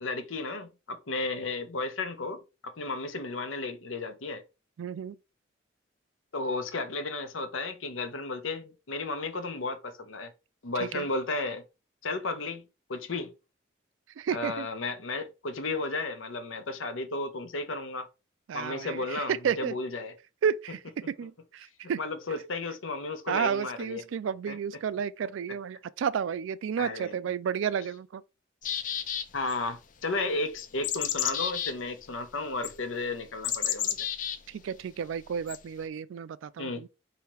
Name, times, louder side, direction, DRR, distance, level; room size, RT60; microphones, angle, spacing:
voice 1, 0.0-4.4 6.3-10.3 10.6-11.6 12.0-12.6 12.9-13.3 14.3-18.1 18.5-20.1 22.0-24.0 24.5-24.6 26.8-27.1 29.3-34.0 36.6-36.8, left 3 dB, 90° left, 0.7 m, -33 dB
voice 2, 4.8-5.2 10.8-11.1 14.2-14.7 18.5-19.7 20.4-22.0 23.3-28.2 34.5-36.9, right 7 dB, 80° right, 0.3 m, -32 dB
sound 1, 28.6-29.5 30.6-31.7 32.6-32.7 33.4-34.4 35.5-35.6, left 10 dB, 40° left, 0.4 m, -31 dB
4.8 x 2.8 x 3.1 m
head